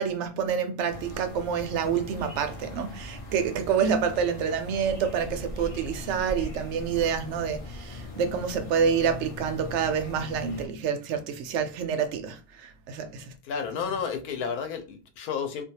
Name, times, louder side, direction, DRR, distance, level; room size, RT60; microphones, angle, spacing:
voice 1, 0.0-13.2, right 7 dB, 70° right, 0.7 m, -28 dB
sound 1, 0.9-10.7, left 1 dB, 60° left, 0.3 m, -40 dB
voice 2, 13.4-15.6, left 6 dB, 75° left, 1.1 m, -31 dB
2.6 x 2.2 x 2.7 m
omnidirectional pair, 1.6 m